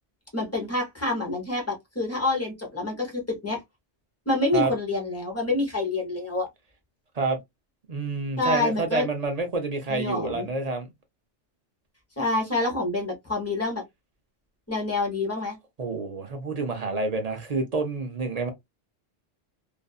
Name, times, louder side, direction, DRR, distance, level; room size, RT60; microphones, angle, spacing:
voice 1, 0.3-3.6 4.3-6.5 8.4-9.1 9.9-10.5 12.2-13.8 14.7-15.6, left 2 dB, 15° left, 0.8 m, -27 dB
voice 2, 7.9-10.9 15.8-18.5, right 3 dB, 45° right, 0.5 m, -28 dB
2.5 x 2.4 x 2.3 m
omnidirectional pair, 1.2 m